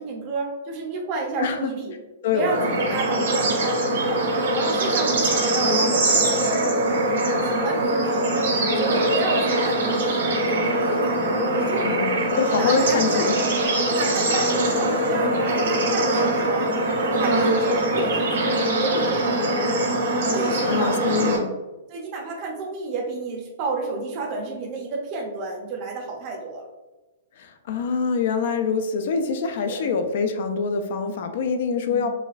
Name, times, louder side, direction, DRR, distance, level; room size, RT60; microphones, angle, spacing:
voice 1, 0.0-1.9 2.2-4.3 4.5-6.6 7.4-8.3 8.7-11.3 11.6-11.9 12.5-13.6 13.8-19.6 20.2-21.4 21.9-26.7 29.7-29.9 31.9-32.1, right 3 dB, 30° right, 1 dB, 0.6 m, -31 dB
voice 2, 1.4-1.7 2.2-2.7 11.8-13.3 20.6-21.5 27.4-32.1, left 5 dB, 50° left, 7 dB, 0.3 m, -25 dB
Bird / Insect / Frog, 2.5-21.4, right 1 dB, 80° right, 1.3 m, -22 dB
4.0 x 2.3 x 2.4 m, 1.1 s
hypercardioid pair, 170°, 0 cm